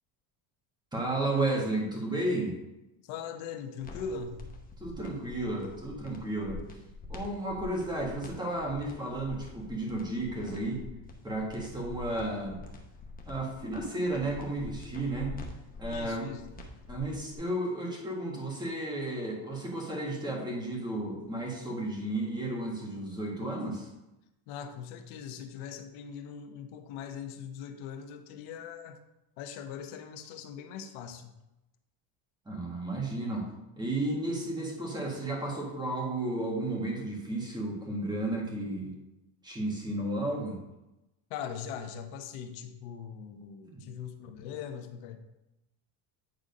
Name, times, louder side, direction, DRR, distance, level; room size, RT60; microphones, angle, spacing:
voice 1, 0.9-2.6 4.8-6.6 7.1-10.8 11.2-12.7 13.3-15.4 15.8-16.3 16.9-23.9 32.5-33.5 33.8-38.9 39.4-40.6 43.6-43.9, right 2 dB, 10° right, -2 dB, 1.8 m, -33 dB
voice 2, 3.0-4.4 15.9-16.4 24.5-29.0 29.4-31.3 41.3-45.2, left 7 dB, 80° left, 6 dB, 1.1 m, -41 dB
sound 1, 3.8-17.4, left 3 dB, 15° left, 0.9 m, -45 dB
9.3 x 3.9 x 5.3 m, 0.95 s
cardioid pair, 155°, 49 cm